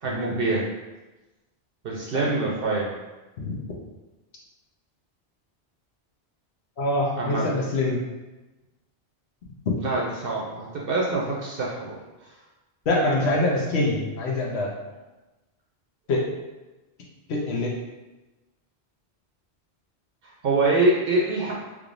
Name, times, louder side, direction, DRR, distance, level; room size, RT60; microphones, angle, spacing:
voice 1, 0.0-0.7 1.8-2.9 7.2-7.5 9.8-12.0 12.2-12.3 20.2-21.5, right 2 dB, 65° right, -3 dB, 0.7 m, -25 dB
voice 2, 6.8-8.0 12.9-14.7 16.1-16.2 17.3-17.7, left 2 dB, 75° left, -3 dB, 1.0 m, -24 dB
3.5 x 3.2 x 2.5 m, 1.1 s
omnidirectional pair, 1.1 m